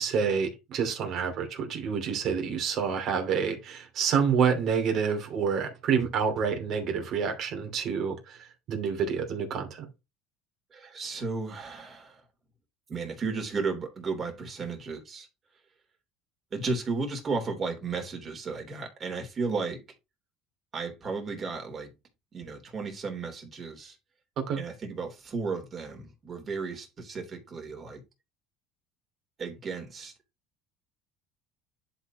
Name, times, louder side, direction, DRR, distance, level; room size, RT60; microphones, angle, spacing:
voice 1, 0.0-8.4 8.7-9.9 24.4-24.6, right 6 dB, 55° right, 2.6 m, -28 dB
voice 2, 10.7-12.2 12.9-15.3 16.5-19.8 20.7-21.9 22.3-24.0 24.6-28.0 29.4-30.1, right 4 dB, 35° right, 3.2 m, -34 dB
11.0 x 4.4 x 3.0 m
supercardioid pair, 100°, 0 cm